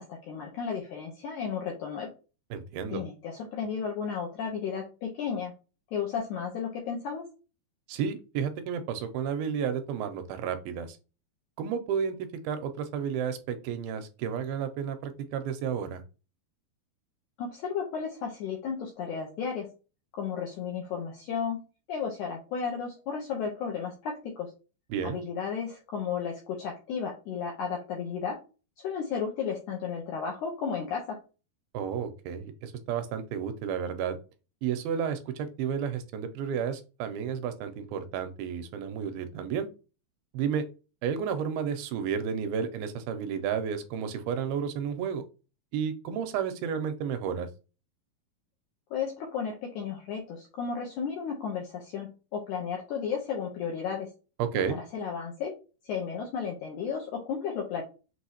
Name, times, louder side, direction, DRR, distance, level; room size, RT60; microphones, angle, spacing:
voice 1, 0.0-2.1 2.9-5.5 5.9-7.3 17.4-19.7 20.1-21.6 21.9-24.5 25.0-28.4 28.8-31.2 48.9-54.1 54.7-55.5 55.8-57.8, left 6 dB, 80° left, 0 dB, 1.8 m, -33 dB
voice 2, 2.5-3.0 7.9-11.0 11.6-12.2 12.4-16.0 24.9-25.2 31.7-34.2 34.6-39.7 40.3-40.6 41.0-45.2 45.7-47.5 54.4-54.8, right 7 dB, 85° right, 9 dB, 2.4 m, -32 dB
6.2 x 2.7 x 2.8 m, 0.32 s
omnidirectional pair, 4.4 m